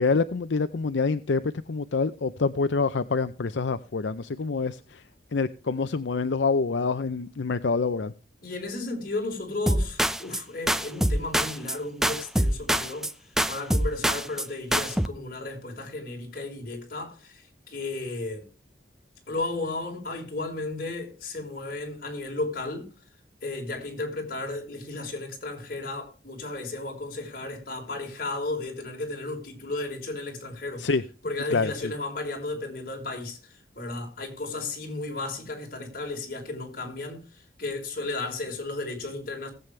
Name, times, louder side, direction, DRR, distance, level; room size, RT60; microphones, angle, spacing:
voice 1, 0.0-1.4 1.7-5.0 5.3-8.1 30.8-31.0 31.5-31.9, left 4 dB, 80° left, 0.6 m, -26 dB
voice 2, 8.4-13.1 13.5-18.4 19.3-22.9 23.4-30.9 31.2-39.5, left 2 dB, 50° left, 4.5 m, -34 dB
sound 1, 9.7-10.4 10.7-11.8 12.0-13.1 13.4-14.5 14.7-15.1, equal, 5° right, 0.5 m, -25 dB
19.0 x 8.3 x 3.2 m
head